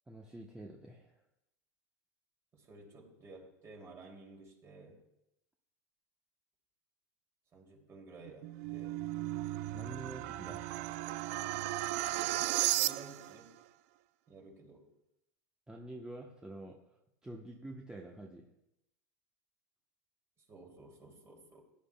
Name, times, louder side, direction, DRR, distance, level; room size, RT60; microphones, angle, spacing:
voice 1, 0.1-1.1 9.7-10.7 15.7-16.8 17.2-18.5, right 2 dB, 10° right, 0 dB, 1.0 m, -47 dB
voice 2, 2.5-5.0 7.5-9.0 12.0-13.6 14.3-14.9 20.4-21.6, right 3 dB, 30° right, 1 dB, 2.7 m, -54 dB
sound 1, 8.2-13.4, right 16 dB, 65° right, 0.4 m, -35 dB
16.5 x 10.0 x 2.3 m, 0.86 s
supercardioid pair, 115°, 9 cm